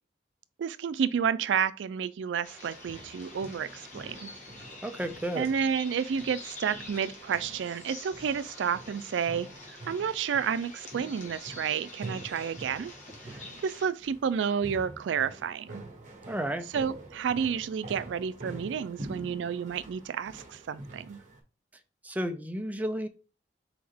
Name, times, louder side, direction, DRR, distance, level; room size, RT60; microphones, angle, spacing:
voice 1, 0.6-4.3 5.4-9.5 9.9-12.9 13.6-15.8 16.7-21.2, right 7 dB, 90° right, 0.3 m, -30 dB
sound 1, 2.4-13.9, left 2 dB, 45° left, 1.5 m, -47 dB
sound 2, 2.6-21.4, right 2 dB, 45° right, 1.2 m, -47 dB
voice 2, 4.8-5.5 16.3-16.6 22.0-23.1, equal, 10° right, 0.4 m, -32 dB
4.2 x 3.5 x 3.5 m
head